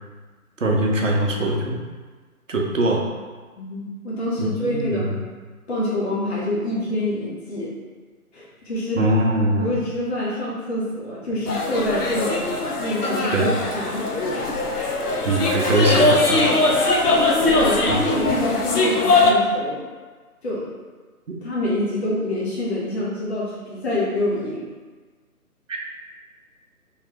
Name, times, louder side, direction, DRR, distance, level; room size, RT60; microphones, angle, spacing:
voice 1, 0.6-1.8 2.5-3.0 4.4-5.2 9.0-9.8 13.3-13.5 15.2-16.5 25.7-25.8, right 1 dB, 55° right, 0 dB, 0.6 m, -22 dB
voice 2, 3.6-5.1 5.7-7.7 8.3-9.1 9.6-14.1 17.1-19.8 20.4-20.7 21.4-24.7, left 1 dB, 45° left, -6 dB, 0.8 m, -26 dB
sound 1, 11.5-19.3, left 2 dB, 80° left, 0.7 m, -21 dB
3.2 x 3.0 x 2.9 m, 1.4 s
figure-of-eight pair, 145°, 45 cm